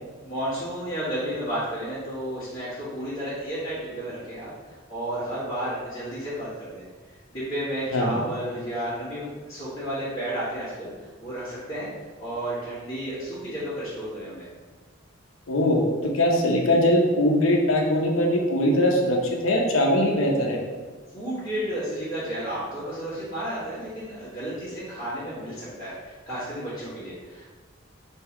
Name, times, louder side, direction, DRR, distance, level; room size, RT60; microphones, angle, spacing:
voice 1, 0.2-4.5 4.9-6.8 7.3-10.9 11.2-11.9 12.2-14.4 21.1-27.5, right 1 dB, 30° left, -14 dB, 1.4 m, -32 dB
voice 2, 15.5-20.6, left 1 dB, 85° left, 0 dB, 0.7 m, -21 dB
3.6 x 2.7 x 4.4 m, 1.4 s
head